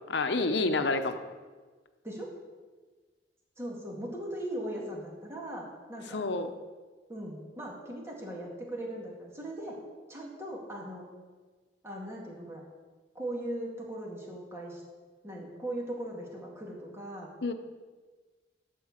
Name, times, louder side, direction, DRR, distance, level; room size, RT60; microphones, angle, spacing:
voice 1, 0.1-1.2 6.1-6.5 17.4-17.5, left 3 dB, 80° left, 8 dB, 0.8 m, -28 dB
voice 2, 3.6-6.2 7.1-9.8 10.1-11.1 11.8-12.6 13.1-14.8 15.2-17.3, right 1 dB, 15° right, -2 dB, 2.0 m, -39 dB
12.5 x 4.5 x 7.3 m, 1.4 s
head